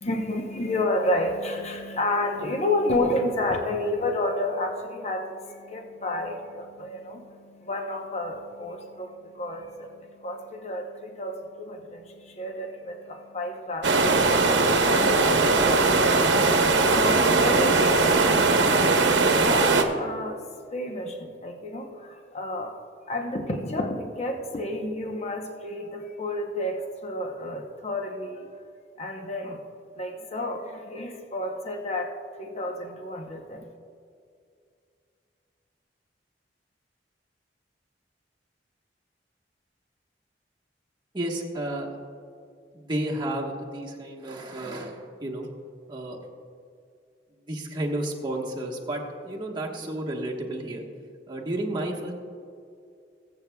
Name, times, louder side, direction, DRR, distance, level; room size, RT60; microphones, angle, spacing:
voice 1, 0.0-16.2 16.8-18.6 19.2-20.4 20.7-22.7 23.1-28.5 29.0-29.6 29.9-32.1 32.4-33.7, left 1 dB, 35° left, 3 dB, 0.8 m, -31 dB
sound 1, 13.8-19.8, right 3 dB, 80° right, 0.9 m, -20 dB
voice 2, 41.1-41.9 42.7-45.5 45.9-46.2 47.4-50.8 51.3-52.1, right 1 dB, 25° right, -2 dB, 1.3 m, -32 dB
21.5 x 7.9 x 2.3 m, 2.4 s
head